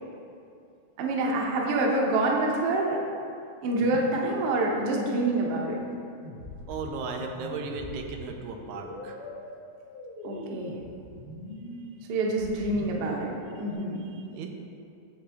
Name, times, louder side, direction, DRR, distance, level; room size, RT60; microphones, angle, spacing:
voice 1, 1.0-3.0 3.6-5.8 10.2-10.8 12.1-14.1, right 2 dB, 65° right, 0 dB, 1.4 m, -27 dB
sound 1, 3.8-13.7, left 1 dB, 60° left, 0.6 m, -42 dB
voice 2, 6.7-9.2 10.3-10.6 11.7-11.9 13.6-13.7 14.0-14.5, right 4 dB, 90° right, 3 dB, 2.0 m, -37 dB
8.1 x 6.9 x 3.4 m, 2.5 s
omnidirectional pair, 3.4 m